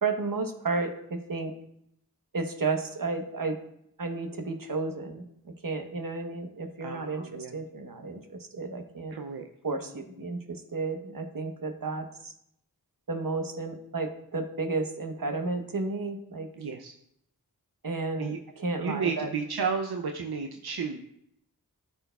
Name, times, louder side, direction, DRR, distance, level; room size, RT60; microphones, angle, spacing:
voice 1, 0.0-1.5 2.3-3.6 4.0-9.2 9.6-12.3 13.1-16.5 17.8-19.3, right 3 dB, 65° right, 5 dB, 1.0 m, -32 dB
voice 2, 6.8-7.6 9.1-9.5 16.6-16.9 18.2-18.4 18.8-21.0, right 5 dB, 90° right, 4 dB, 0.5 m, -32 dB
13.0 x 4.4 x 2.3 m, 0.76 s
wide cardioid pair, 40°, 37 cm